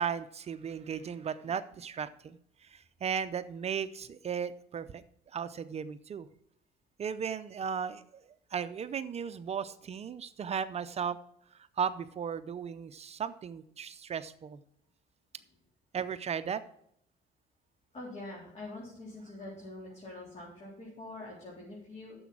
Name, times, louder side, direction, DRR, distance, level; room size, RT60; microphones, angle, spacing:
voice 1, 0.0-5.0 5.3-6.3 7.0-8.2 8.5-11.2 11.8-14.6 15.9-16.6, right 7 dB, 40° right, 12 dB, 0.6 m, -36 dB
voice 2, 17.9-22.2, left 2 dB, 40° left, -5 dB, 3.9 m, -45 dB
10.0 x 7.1 x 6.0 m, 0.73 s
cardioid pair, 110°, 17 cm